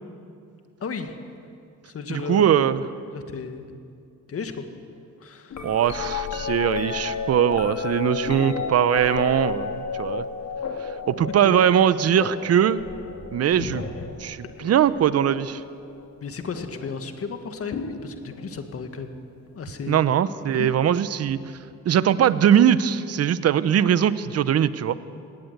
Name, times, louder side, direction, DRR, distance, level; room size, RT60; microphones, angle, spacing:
voice 1, 0.8-1.2 1.8-2.5 3.1-3.7 4.3-4.7 5.2-5.8 11.4-11.6 13.5-14.5 16.2-19.2 19.5-20.1 20.6-20.7, left 5 dB, 50° left, 7 dB, 1.9 m, -34 dB
voice 2, 2.3-2.8 5.6-10.3 11.1-12.8 13.3-13.8 14.2-14.4 14.6-15.6 19.9-21.4 21.8-25.0, right 9 dB, 55° right, 15 dB, 0.8 m, -21 dB
sound 1, 5.5-15.6 16.5-17.0 17.7-18.7 20.5-20.6, left 5 dB, 65° left, 2.3 m, -32 dB
18.5 x 17.0 x 8.1 m, 2.5 s
cardioid pair, 90°, 30 cm